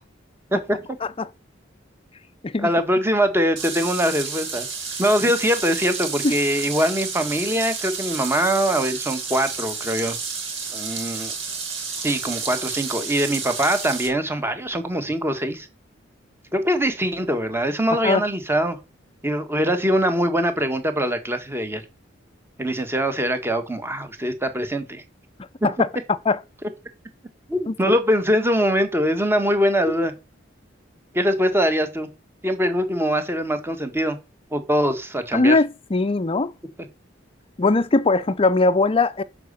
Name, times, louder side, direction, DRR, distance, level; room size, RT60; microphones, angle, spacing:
voice 1, 2.6-4.7 5.0-10.2 10.7-11.3 12.0-15.7 16.5-18.8 19.2-21.8 22.6-25.0 27.5-30.1 31.1-32.1 32.4-34.2 34.5-35.6, equal, 15° right, 1.3 m, -22 dB
sound 1, 3.6-14.1, right 5 dB, 80° right, 3.4 m, -31 dB
voice 2, 35.3-36.5 37.6-39.2, left 3 dB, 30° left, 0.5 m, -20 dB
10.5 x 5.0 x 6.7 m
head